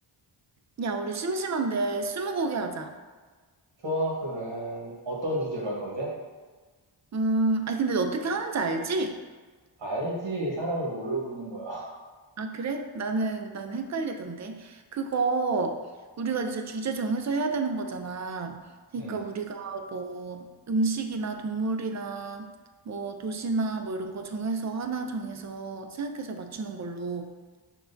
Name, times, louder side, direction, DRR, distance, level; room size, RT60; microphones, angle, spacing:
voice 1, 0.8-2.9 7.1-9.2 12.4-15.8 16.2-18.6 18.9-22.5 22.9-27.3, right 3 dB, 35° right, 6 dB, 0.4 m, -30 dB
voice 2, 3.8-6.1 9.8-11.9 19.0-19.2, right 1 dB, 65° right, -3 dB, 1.2 m, -31 dB
5.8 x 2.3 x 2.6 m, 1.4 s
cardioid pair, 70°, 49 cm